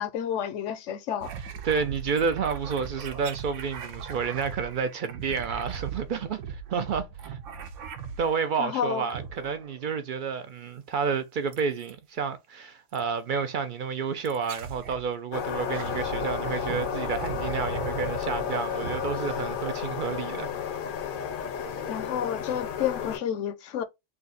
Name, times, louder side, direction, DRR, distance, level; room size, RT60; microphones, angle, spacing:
voice 1, 0.0-1.3 8.6-9.1 21.9-23.8, left 9 dB, 80° left, 0.9 m, -30 dB
sound 1, 1.2-8.7 9.1-9.8 11.5-12.0 12.9-13.1 14.3-15.1 15.5-19.9, right 7 dB, 80° right, 1.0 m, -39 dB
voice 2, 1.6-7.4 8.2-20.5, right 6 dB, 60° right, 0.5 m, -30 dB
sound 2, 15.3-23.2, left 8 dB, 55° left, 0.6 m, -32 dB
3.4 x 2.4 x 3.9 m
omnidirectional pair, 1.3 m